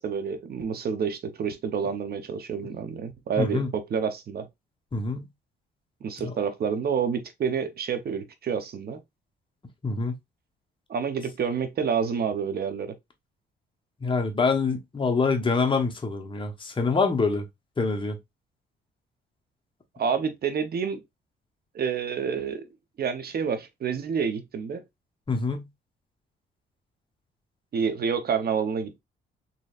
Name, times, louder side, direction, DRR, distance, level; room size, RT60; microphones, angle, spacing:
voice 1, 0.0-4.5 6.0-9.0 10.9-12.9 20.0-21.0 21.7-22.7 23.0-24.8 27.7-29.0, right 6 dB, 50° right, 0.8 m, -28 dB
voice 2, 3.4-3.7 4.9-5.3 6.2-6.3 9.8-10.2 14.0-17.5 17.8-18.2 25.3-25.6, left 4 dB, 25° left, 1.1 m, -25 dB
4.1 x 3.1 x 2.4 m
cardioid pair, 90°, 20 cm